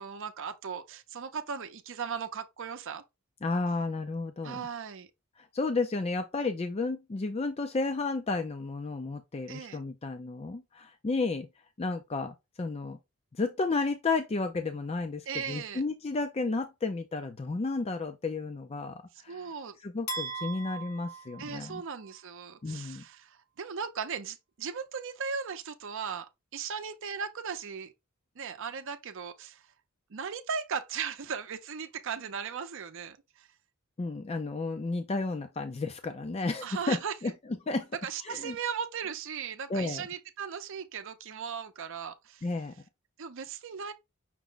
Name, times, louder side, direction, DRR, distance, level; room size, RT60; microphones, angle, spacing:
voice 1, 0.0-3.0 4.4-5.1 9.5-9.8 15.3-15.8 19.3-19.8 21.4-27.9 28.4-29.6 30.1-33.5 36.6-37.1 38.0-42.4 43.2-43.9, right 6 dB, 60° right, 0.6 m, -37 dB
voice 2, 3.4-4.7 5.4-11.5 11.8-13.0 13.4-19.5 19.8-21.8 22.6-23.0 34.0-37.3 37.7-37.9 38.2-38.6 39.7-40.0 42.4-42.7, left 3 dB, 30° left, 0.4 m, -32 dB
sound 1, 20.1-22.2, right 3 dB, 75° left, 1.4 m, -39 dB
5.9 x 2.1 x 3.8 m
head